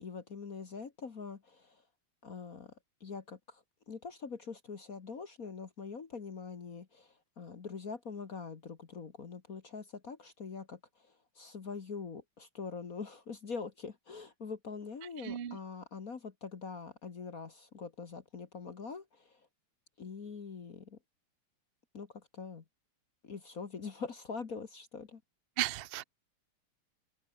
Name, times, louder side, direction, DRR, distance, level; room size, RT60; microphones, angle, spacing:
voice 1, 0.0-1.8 2.2-2.7 3.0-19.4 20.0-21.0 21.9-22.6 23.2-25.2, left 5 dB, 45° left, 1.9 m, -44 dB
voice 2, 15.2-15.6 25.6-26.0, right 13 dB, 75° right, 0.5 m, -35 dB
omnidirectional pair, 2.4 m